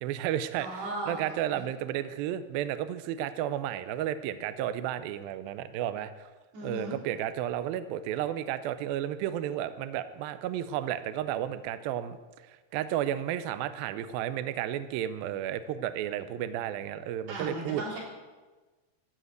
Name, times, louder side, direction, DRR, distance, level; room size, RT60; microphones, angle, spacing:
voice 1, 0.0-6.3 6.6-12.2 12.5-17.8, right 11 dB, 85° right, 12 dB, 2.1 m, -32 dB
voice 2, 0.6-1.2 6.5-7.0 17.3-18.0, right 1 dB, 65° right, -3 dB, 5.5 m, -36 dB
13.5 x 8.3 x 8.1 m, 1.3 s
omnidirectional pair, 4.9 m